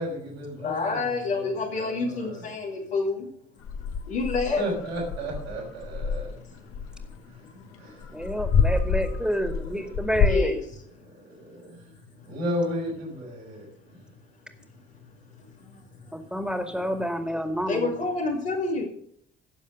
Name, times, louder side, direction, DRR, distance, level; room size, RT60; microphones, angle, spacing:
voice 1, 0.0-2.5 4.6-6.6 7.2-7.5 7.8-8.1 9.2-9.8 11.0-11.8 12.2-14.0, equal, 80° right, -6 dB, 5.1 m, -34 dB
voice 2, 0.6-3.3 4.1-4.6 6.3-6.6 7.1-7.8 10.3-10.6 11.6-11.9 15.4-16.1 17.7-18.8, left 3 dB, 80° left, -4 dB, 2.8 m, -29 dB
sound 1, 3.6-7.1 8.0-10.4, left 6 dB, 45° left, 1.3 m, -26 dB
voice 3, 8.1-10.6 16.1-17.9, equal, 5° right, 7 dB, 2.2 m, -29 dB
16.5 x 7.1 x 6.5 m, 0.63 s
figure-of-eight pair, 45°, 30 cm